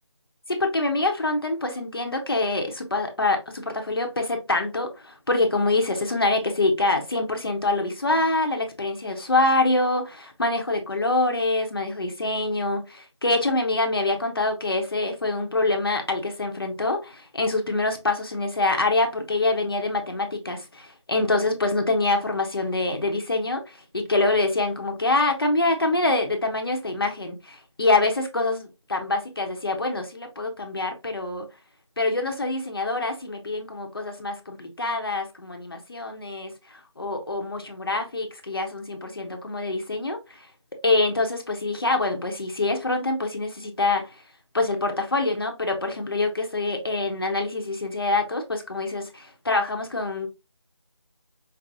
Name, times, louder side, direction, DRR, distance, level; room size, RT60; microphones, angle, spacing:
voice 1, 0.5-31.5 32.0-40.5 40.8-44.2 44.5-50.3, left 2 dB, 50° left, 0.7 m, -25 dB
5.3 x 2.0 x 2.6 m
figure-of-eight pair, 170°, 15 cm